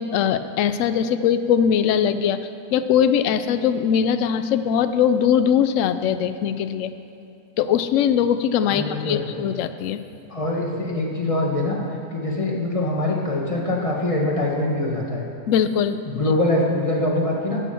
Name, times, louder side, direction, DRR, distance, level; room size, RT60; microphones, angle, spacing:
voice 1, 0.0-2.4 2.7-6.9 7.6-10.0 15.5-16.0, left 8 dB, 65° left, 11 dB, 0.8 m, -21 dB
voice 2, 8.7-9.3 10.3-11.8 12.1-15.2 16.1-17.6, left 1 dB, 20° left, -2 dB, 1.6 m, -23 dB
12.5 x 8.4 x 7.0 m, 2.7 s
omnidirectional pair, 1.8 m